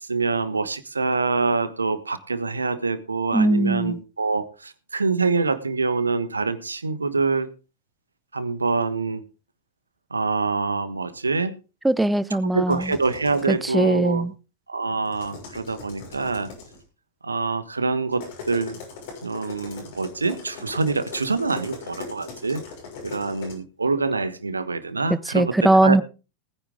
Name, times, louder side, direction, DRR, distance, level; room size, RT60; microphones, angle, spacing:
voice 1, 0.0-7.5 8.3-9.2 10.1-11.5 12.4-14.3 14.7-16.5 17.2-18.8 19.2-22.6 23.0-25.6 25.8-26.0, right 4 dB, 80° right, 1.2 m, -25 dB
voice 2, 3.3-4.0 11.8-12.9 13.5-14.3 25.1-26.0, right 1 dB, 5° right, 0.7 m, -20 dB
sound 1, 12.7-13.5 15.0-16.8 18.1-23.5, left 5 dB, 50° left, 6.5 m, -40 dB
19.5 x 9.8 x 3.7 m
figure-of-eight pair, 90°, 0 cm